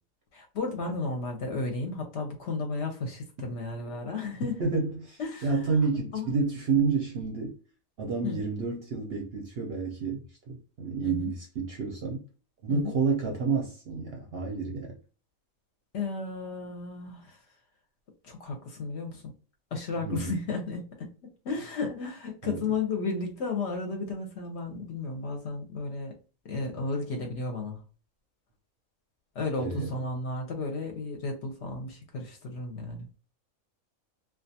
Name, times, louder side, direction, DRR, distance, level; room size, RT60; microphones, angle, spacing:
voice 1, 0.3-4.6 5.2-5.6 6.1-6.3 8.2-8.4 11.0-11.3 12.7-12.9 15.9-17.4 18.2-19.2 19.7-21.1 21.4-26.1 26.4-27.8 29.4-33.1, left 3 dB, 60° left, 0.8 m, -33 dB
voice 2, 4.6-7.6 8.0-12.2 12.6-15.0 20.0-20.4 22.4-22.6 29.6-29.9, right 4 dB, 60° right, 0.7 m, -29 dB
2.3 x 2.3 x 2.7 m
omnidirectional pair, 1.4 m